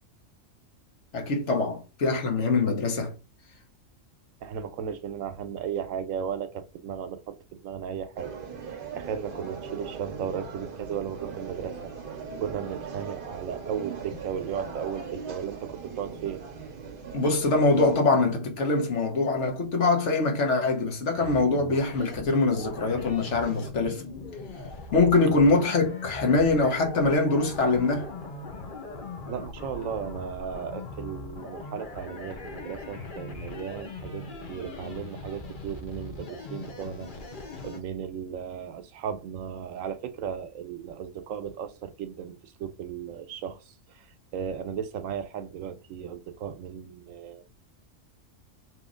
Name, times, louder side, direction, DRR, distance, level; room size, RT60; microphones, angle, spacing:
voice 1, 1.1-3.1 17.1-24.0 24.9-28.1, left 3 dB, 65° left, 1.2 m, -23 dB
voice 2, 4.4-8.3 8.6-11.8 12.4-16.4 29.3-37.1 37.6-43.6 43.9-44.1 44.3-47.4, right 8 dB, 85° right, 1.0 m, -35 dB
sound 1, 8.2-18.0, right 5 dB, 50° right, 0.7 m, -39 dB
sound 2, 21.1-37.8, left 3 dB, 45° left, 0.9 m, -40 dB
3.0 x 2.7 x 3.6 m
omnidirectional pair, 1.3 m